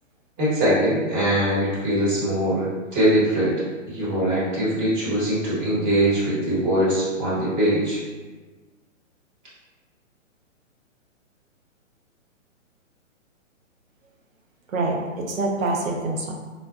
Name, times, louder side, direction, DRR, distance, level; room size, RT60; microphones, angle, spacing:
voice 1, 0.4-3.5 3.9-8.0, right 1 dB, 20° right, -8 dB, 1.0 m, -22 dB
voice 2, 14.7-16.3, right 2 dB, 80° right, 0 dB, 0.8 m, -25 dB
3.9 x 2.1 x 2.3 m, 1.3 s
hypercardioid pair, 140°, 39 cm